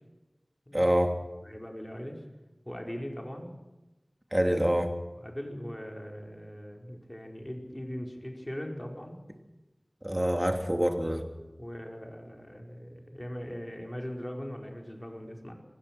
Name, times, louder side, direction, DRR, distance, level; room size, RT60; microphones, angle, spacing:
voice 1, 0.7-1.2 4.3-4.9 10.0-11.2, equal, 20° right, 5 dB, 3.1 m, -26 dB
voice 2, 1.4-2.2 2.6-3.5 5.1-9.2 11.6-15.5, equal, 20° left, 2 dB, 5.1 m, -40 dB
26.0 x 16.5 x 6.3 m, 1.1 s
wide cardioid pair, 45°, 0 cm